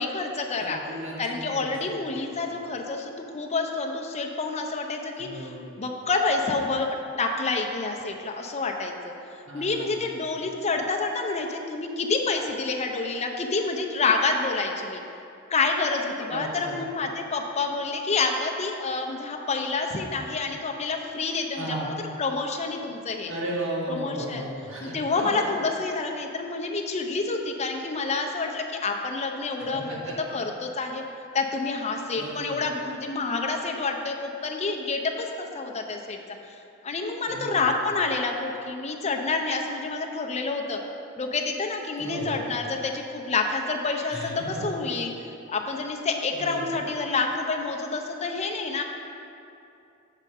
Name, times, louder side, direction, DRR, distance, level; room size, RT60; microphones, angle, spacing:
voice 1, 0.0-0.8 1.2-6.9 7.2-15.0 15.5-23.3 23.9-24.4 24.8-31.0 31.3-36.2 36.5-40.8 41.2-45.1 45.5-48.8, left 3 dB, 30° left, 2 dB, 0.6 m, -28 dB
voice 2, 0.6-2.2 5.2-5.8 9.5-10.0 10.3-10.4 16.3-16.8 21.6-21.9 23.3-25.0 29.9-30.1 32.2-32.6 37.2-37.6 42.0-42.4 44.1-44.6 46.3-46.8, right 1 dB, 65° right, -4 dB, 1.6 m, -35 dB
6.7 x 5.0 x 6.3 m, 2.7 s
head